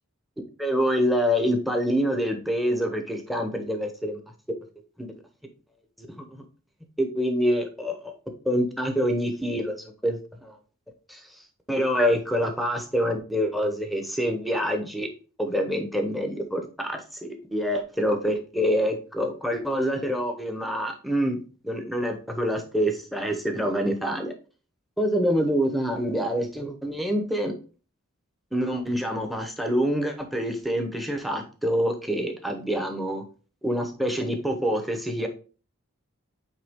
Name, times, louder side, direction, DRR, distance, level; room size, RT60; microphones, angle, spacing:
voice 1, 0.6-4.2 5.0-5.1 6.0-6.3 7.0-8.1 8.4-9.8 10.0-10.5 11.1-11.4 11.7-15.1 15.4-21.4 21.6-24.3 25.0-27.5 28.5-33.2 33.6-35.3, equal, ahead, 5 dB, 0.9 m, -26 dB
8.2 x 3.4 x 3.6 m, 0.37 s
head